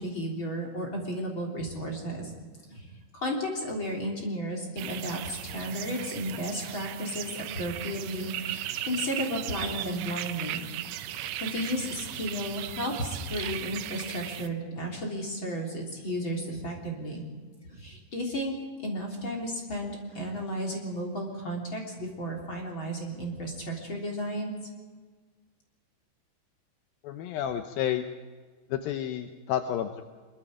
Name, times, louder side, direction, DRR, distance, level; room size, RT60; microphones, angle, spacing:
voice 1, 0.0-2.3 2.7-2.9 3.1-10.6 11.1-17.2 17.7-18.5 18.8-24.5, equal, 30° left, -1 dB, 3.6 m, -33 dB
sound 1, 4.8-14.5, right 13 dB, 85° right, 3.2 m, -37 dB
voice 2, 27.0-28.0 28.7-30.0, left 10 dB, 75° left, 7 dB, 2.2 m, -30 dB
24.0 x 22.5 x 5.0 m, 1.5 s
omnidirectional pair, 5.2 m